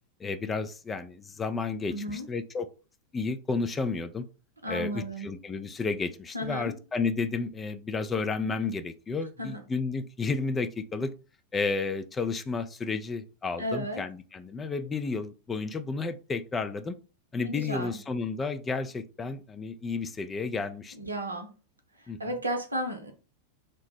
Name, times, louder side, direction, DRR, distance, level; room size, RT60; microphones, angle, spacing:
voice 1, 0.2-2.7 3.1-4.3 4.7-11.1 11.5-17.0 17.3-21.0 22.1-22.2, left 4 dB, 15° left, 0.3 m, -32 dB
voice 2, 1.9-2.3 4.6-5.3 6.3-6.8 9.4-9.6 13.6-14.0 17.4-18.0 20.9-21.5 22.0-23.1, equal, 80° right, 0.6 m, -34 dB
2.8 x 2.0 x 3.3 m
figure-of-eight pair, 90°, 0 cm